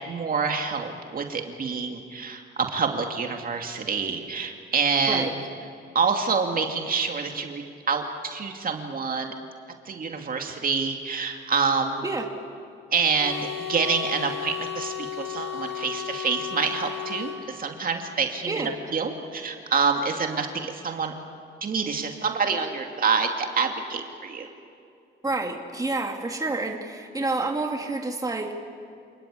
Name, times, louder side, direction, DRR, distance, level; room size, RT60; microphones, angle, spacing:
voice 1, 0.1-5.4 5.9-9.3 9.9-12.0 12.9-21.1 21.6-24.5, right 5 dB, 45° right, 3 dB, 2.6 m, -27 dB
sound 1, 13.2-17.4, left 9 dB, 75° left, 4.7 m, -34 dB
voice 2, 25.2-28.5, right 3 dB, 15° right, 2 dB, 2.5 m, -28 dB
28.5 x 19.5 x 8.6 m, 2.4 s
cardioid pair, 90°, 20 cm